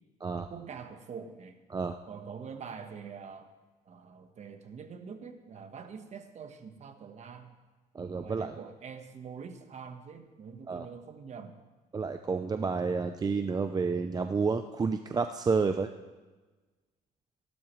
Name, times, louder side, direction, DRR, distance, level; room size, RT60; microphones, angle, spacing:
voice 1, 0.4-1.6 2.1-3.5 3.9-7.6 8.2-11.6, right 6 dB, 40° right, 7 dB, 1.2 m, -45 dB
voice 2, 7.9-8.5 10.7-10.9 11.9-15.9, right 4 dB, 25° right, 8 dB, 0.5 m, -30 dB
16.5 x 12.0 x 3.2 m, 1.3 s
cardioid pair, 110°, 17 cm